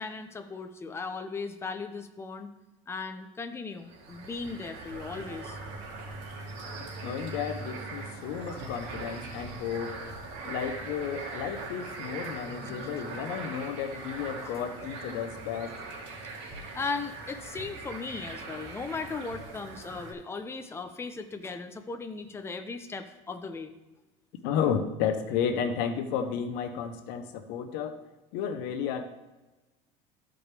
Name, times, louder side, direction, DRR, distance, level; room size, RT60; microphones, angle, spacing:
voice 1, 0.0-2.5 2.9-5.6 6.2-6.3 6.7-6.8 12.6-13.0 16.3-23.7, left 4 dB, 15° left, 7 dB, 0.8 m, -37 dB
sound 1, 3.8-20.1, right 3 dB, 90° right, 2.3 m, -41 dB
voice 2, 6.8-10.0 10.4-15.7 24.4-28.0 28.3-29.1, left 7 dB, 75° left, 8 dB, 1.0 m, -32 dB
13.5 x 5.1 x 3.4 m, 1.1 s
cardioid pair, 120°, 16 cm